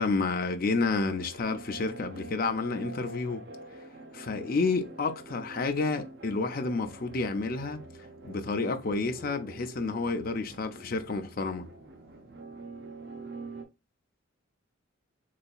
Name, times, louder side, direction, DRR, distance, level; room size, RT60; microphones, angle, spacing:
voice 1, 0.0-3.4 4.1-7.8 8.2-11.7, left 3 dB, 45° left, 0.5 m, -30 dB
sound 1, 0.9-13.6, right 2 dB, 55° right, 0.6 m, -46 dB
4.0 x 2.7 x 2.3 m
head